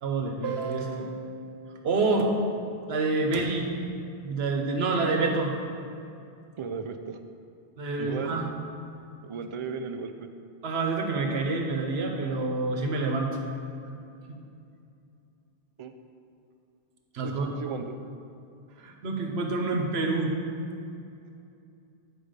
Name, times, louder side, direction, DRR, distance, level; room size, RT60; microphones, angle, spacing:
voice 1, 0.0-2.3 2.9-3.7 4.2-5.5 7.8-8.4 10.6-13.4 17.1-17.5 18.8-20.3, right 3 dB, 85° right, 2 dB, 1.1 m, -27 dB
voice 2, 6.6-7.2 8.0-8.4 9.2-10.3 15.8-15.9 17.2-18.0, right 5 dB, 50° right, 7 dB, 0.3 m, -35 dB
9.5 x 4.7 x 5.2 m, 2.6 s
omnidirectional pair, 1.0 m